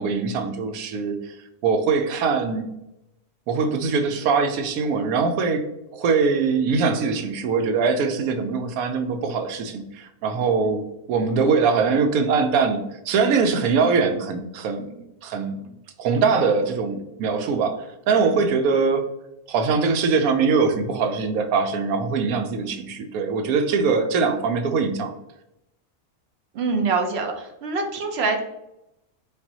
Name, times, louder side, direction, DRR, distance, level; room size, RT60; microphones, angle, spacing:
voice 1, 0.0-1.3 1.6-2.7 3.5-5.7 5.9-10.8 11.1-14.9 15.2-15.6 16.0-19.1 19.5-25.1, right 5 dB, 85° right, 7 dB, 1.0 m, -22 dB
voice 2, 26.5-28.4, right 4 dB, 60° right, 4 dB, 0.7 m, -24 dB
5.3 x 2.4 x 2.7 m, 0.86 s
omnidirectional pair, 1.5 m